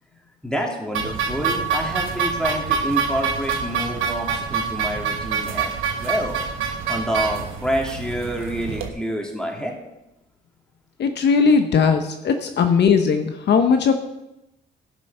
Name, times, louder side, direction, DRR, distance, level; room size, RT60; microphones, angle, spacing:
voice 1, 0.4-6.4 6.9-9.7, equal, 5° left, 0 dB, 2.8 m, -27 dB
sound 1, 0.9-8.9, right 6 dB, 90° right, 1.2 m, -26 dB
voice 2, 11.0-13.9, left 5 dB, 60° left, 6 dB, 0.9 m, -18 dB
15.0 x 6.2 x 5.5 m, 0.92 s
cardioid pair, 90°, 20 cm